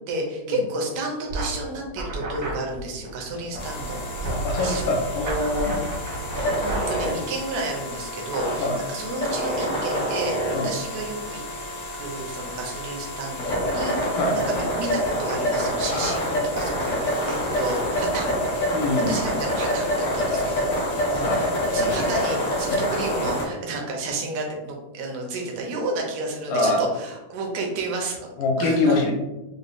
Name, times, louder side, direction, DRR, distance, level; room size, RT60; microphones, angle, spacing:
voice 1, 0.1-5.0 5.6-5.9 6.6-11.4 11.9-18.3 19.1-21.4 21.7-28.3 28.6-29.0, right 2 dB, 70° right, 0 dB, 1.9 m, -31 dB
sound 1, 1.3-7.0, right 2 dB, 55° right, 1.0 m, -32 dB
sound 2, 3.6-23.4, equal, 60° left, 0.8 m, -27 dB
voice 2, 4.3-5.8 8.6-8.8 10.5-10.7 14.1-14.4 15.9-16.2 18.7-19.2 20.2-20.4 21.2-22.0 22.7-22.8 26.5-26.8 28.4-29.1, left 2 dB, 90° left, 0 dB, 2.3 m, -24 dB
6.5 x 2.3 x 2.5 m, 1.0 s
omnidirectional pair, 3.7 m